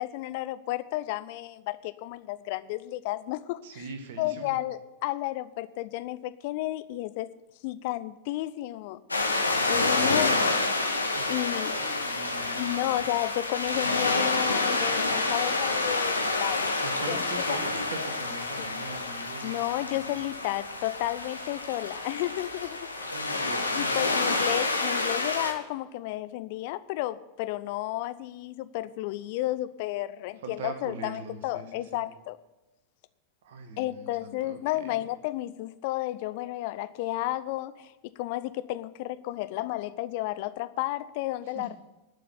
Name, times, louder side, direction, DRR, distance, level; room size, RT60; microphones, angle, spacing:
voice 1, 0.0-3.9 4.2-7.3 7.6-9.0 9.7-10.6 11.3-11.8 12.5-17.6 18.6-18.7 19.4-22.8 23.7-32.4 33.8-41.8, left 16 dB, 50° left, 14 dB, 0.7 m, -32 dB
voice 2, 3.6-4.6 11.1-13.0 16.8-20.0 22.9-24.4 30.4-32.0 33.4-35.0 41.5-41.8, right 3 dB, 55° right, 6 dB, 1.8 m, -42 dB
sound 1, 9.1-25.5, left 2 dB, 80° left, 1.5 m, -28 dB
11.5 x 6.7 x 9.6 m, 1.0 s
figure-of-eight pair, 90°, 0 cm